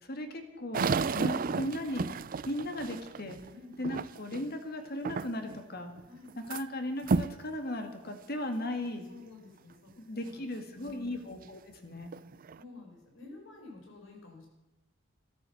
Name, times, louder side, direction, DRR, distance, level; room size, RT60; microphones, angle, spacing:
voice 1, 0.0-2.1 2.5-3.4 3.8-5.9 6.5-9.1 10.0-12.1, left 1 dB, 55° left, 6 dB, 2.2 m, -37 dB
sound 1, 0.7-4.5 5.0-5.6 6.0-6.6 7.0-7.4 8.1-8.2 8.9-9.0 11.4-11.5 12.0-12.6, right 4 dB, 45° right, 0.4 m, -32 dB
voice 2, 6.1-6.4 9.1-10.4 10.7-11.3 12.6-14.5, left 3 dB, 90° left, 1 dB, 5.4 m, -51 dB
14.0 x 13.0 x 7.2 m, 0.99 s
head